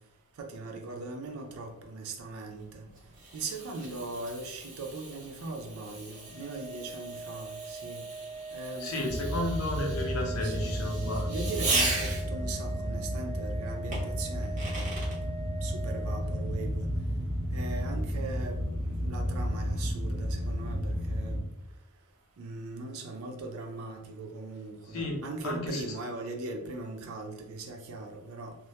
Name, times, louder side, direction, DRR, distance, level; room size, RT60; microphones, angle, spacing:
voice 1, 0.4-2.8 3.3-8.0 8.5-8.9 10.4-10.9 11.3-15.1 15.6-16.9 17.5-21.4 22.4-28.6, right 3 dB, 80° right, 0.4 m, -40 dB
Fireworks, 2.6-12.5 13.9-15.2, right 2 dB, 35° right, 0.7 m, -37 dB
Organ, 6.2-16.9, right 4 dB, 10° left, 0.3 m, -42 dB
voice 2, 8.8-11.3 24.9-25.2 25.4-25.8, left 1 dB, 85° left, 0.6 m, -32 dB
sound 1, 9.1-21.4, equal, 10° right, 1.0 m, -32 dB
2.2 x 2.1 x 2.8 m
head